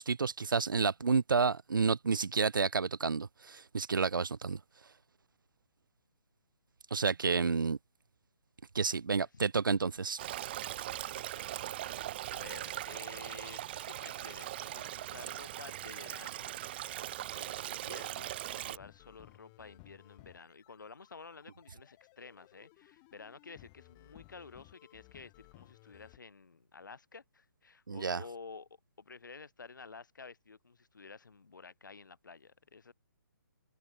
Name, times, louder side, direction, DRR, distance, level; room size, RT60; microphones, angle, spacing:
voice 1, 0.0-4.6 6.9-7.8 8.7-10.2 27.9-28.2, right 5 dB, 75° right, 0.5 m, -30 dB
Stream, 10.2-18.8, right 13 dB, 30° right, 0.6 m, -40 dB
voice 2, 11.1-11.5 12.3-16.5 17.3-28.7 29.0-32.9, left 4 dB, 65° left, 5.7 m, -51 dB
sound 1, 18.5-26.2, left 39 dB, 25° left, 3.1 m, -60 dB
figure-of-eight pair, 140°, 11 cm